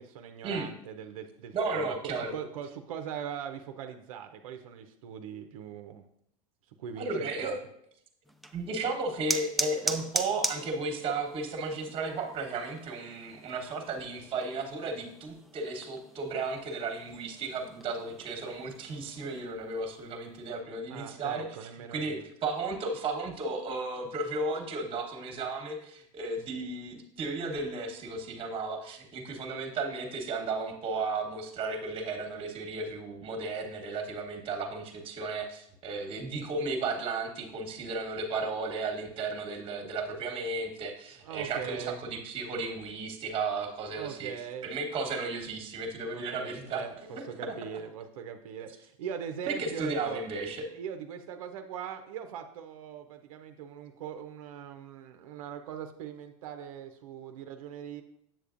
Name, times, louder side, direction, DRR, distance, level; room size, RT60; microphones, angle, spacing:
voice 1, 0.0-6.0 6.8-7.6 20.9-22.2 41.2-42.0 43.9-44.7 45.0-45.3 46.1-46.9 47.2-50.2 50.7-58.0, right 8 dB, 85° right, 7 dB, 0.6 m, -41 dB
voice 2, 1.5-2.3 7.0-7.6 8.5-21.5 21.9-44.3 44.6-47.2 49.5-50.7, right 3 dB, 30° right, 4 dB, 1.2 m, -34 dB
sound 1, 8.3-19.4, right 1 dB, ahead, 0.3 m, -39 dB
7.5 x 6.8 x 2.5 m, 0.72 s
supercardioid pair, 130°, 17 cm